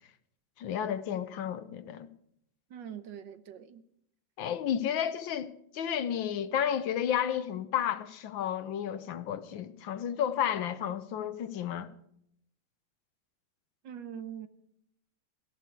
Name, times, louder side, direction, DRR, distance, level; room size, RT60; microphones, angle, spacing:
voice 1, 0.6-2.1 4.4-11.9, left 9 dB, 85° left, 1.7 m, -32 dB
voice 2, 2.7-3.8 13.8-14.5, right 8 dB, 70° right, 1.6 m, -43 dB
17.0 x 14.0 x 4.6 m
omnidirectional pair, 2.1 m